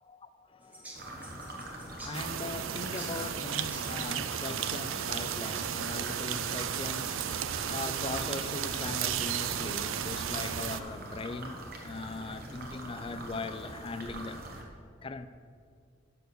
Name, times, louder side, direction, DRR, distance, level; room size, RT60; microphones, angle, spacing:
voice 1, 0.0-14.5 15.0-15.3, left 3 dB, 25° left, 0.3 m, -40 dB
sound 1, 0.6-6.2, right 1 dB, 5° right, 0.9 m, -51 dB
sound 2, 0.9-14.6, right 1 dB, 45° right, 1.2 m, -44 dB
sound 3, 2.1-10.8, right 9 dB, 75° right, 0.4 m, -34 dB
6.9 x 6.1 x 6.5 m
head